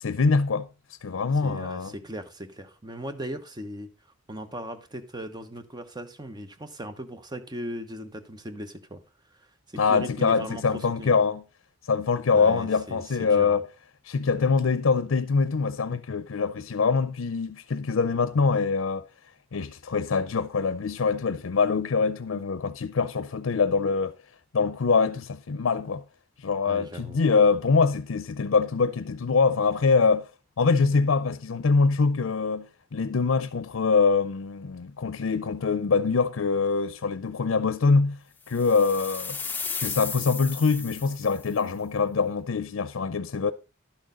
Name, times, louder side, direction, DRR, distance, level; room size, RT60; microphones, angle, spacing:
voice 1, 0.0-1.9 9.8-11.4 11.9-13.7 14.0-19.0 19.5-24.1 24.5-26.0 26.4-30.3 30.6-38.2 38.5-39.4 39.8-43.5, left 4 dB, 80° left, 0.5 m, -24 dB
voice 2, 1.4-3.9 4.3-9.0 9.4-11.2 12.3-13.6 26.7-27.2, right 1 dB, 20° right, 0.9 m, -38 dB
sound 1, 38.5-41.5, left 5 dB, 10° left, 0.7 m, -35 dB
11.5 x 6.4 x 3.8 m
head